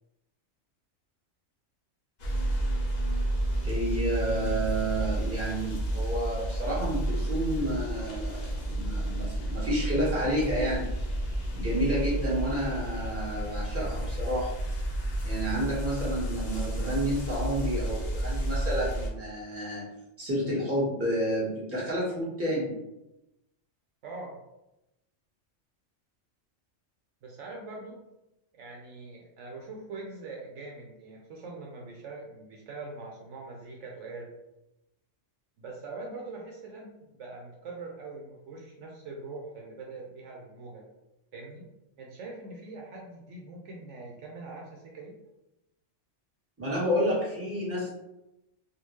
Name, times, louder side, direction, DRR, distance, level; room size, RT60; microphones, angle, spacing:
sound 1, 2.2-19.1, right 1 dB, 45° left, 0.6 m, -31 dB
voice 1, 3.6-10.9 11.5-14.5 15.2-19.8 20.2-22.7 46.6-48.0, equal, 10° right, -8 dB, 1.3 m, -30 dB
voice 2, 24.0-24.4 27.2-28.0 28.5-34.3 35.6-40.8 41.3-41.7 42.0-45.1, right 3 dB, 70° right, -1 dB, 0.9 m, -43 dB
3.5 x 2.4 x 3.1 m, 0.92 s
omnidirectional pair, 1.3 m